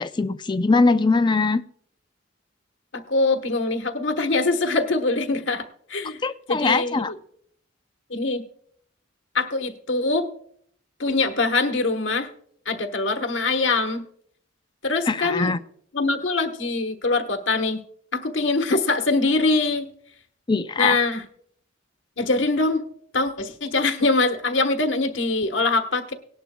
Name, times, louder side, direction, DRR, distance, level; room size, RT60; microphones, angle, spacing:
voice 1, 0.0-1.6 6.2-7.1 15.1-15.6 20.5-21.0, left 3 dB, 25° left, 0.4 m, -21 dB
voice 2, 2.9-6.2 6.5-7.1 8.1-8.4 9.3-10.3 11.0-12.3 12.7-14.0 14.8-15.5 15.9-17.8 18.1-19.9 20.8-21.2 22.2-22.8 23.1-26.1, left 3 dB, 75° left, 1.2 m, -23 dB
18.5 x 11.0 x 2.3 m
head